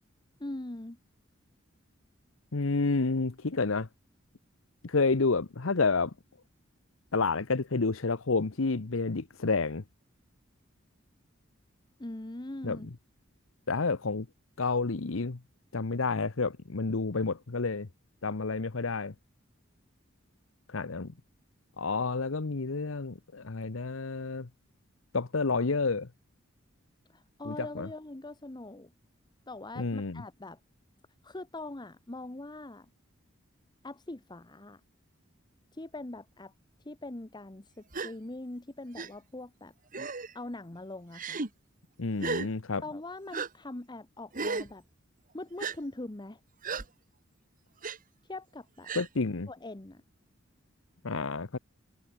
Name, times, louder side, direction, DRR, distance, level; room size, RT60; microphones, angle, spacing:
voice 1, 0.4-1.0 12.0-12.9 27.1-28.9 29.5-30.6 31.2-32.9 33.8-34.8 35.7-36.5 36.8-39.7 40.3-41.4 42.8-44.8 45.3-46.4 48.3-48.9 49.5-50.0, left 2 dB, 20° left, 1.0 m, -42 dB
voice 2, 2.5-3.9 4.8-6.1 7.1-9.8 12.6-12.8 13.7-14.3 14.6-15.4 15.7-17.9 18.2-19.1 20.7-21.1 21.8-24.5 25.1-26.1 27.4-27.9 29.8-30.2 42.0-42.8 48.9-49.5 51.0-51.6, left 4 dB, 75° left, 0.9 m, -29 dB
Gasp, 37.9-38.1 39.0-39.1 39.9-40.3 41.1-41.5 42.2-42.5 43.3-43.5 44.3-44.7 45.6-45.8 46.6-46.8 47.8-48.0 48.8-49.1, right 4 dB, 40° right, 1.6 m, -34 dB
head